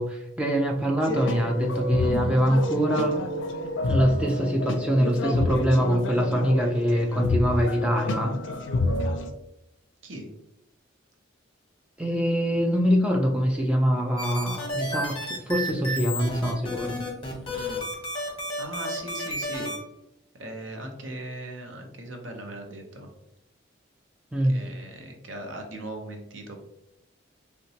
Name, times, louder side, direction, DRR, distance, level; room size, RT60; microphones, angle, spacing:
voice 1, 0.0-3.2 3.8-8.3 12.0-17.0 24.3-24.6, equal, 5° right, 1 dB, 0.3 m, -24 dB
sound 1, 1.0-9.3, left 2 dB, 70° left, 0.4 m, -28 dB
sound 2, 14.2-19.8, equal, 30° left, 0.8 m, -32 dB
voice 2, 17.4-17.8 18.2-18.3 18.6-19.7 20.4-23.1 24.4-26.6, right 1 dB, 75° right, 3 dB, 0.6 m, -39 dB
3.8 x 2.1 x 2.7 m, 0.83 s
head